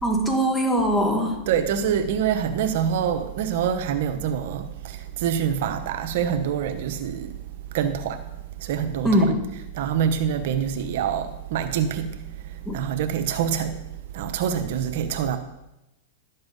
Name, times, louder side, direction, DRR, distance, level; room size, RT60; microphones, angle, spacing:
voice 1, 0.0-1.5 9.0-9.5 12.7-12.8, equal, 10° left, 2.2 m, -22 dB
voice 2, 1.5-7.4 7.7-8.2 8.6-9.1 9.8-13.8 14.1-15.4, right 8 dB, 65° right, 1.0 m, -26 dB
12.0 x 7.8 x 5.3 m
hypercardioid pair, 135°, 0 cm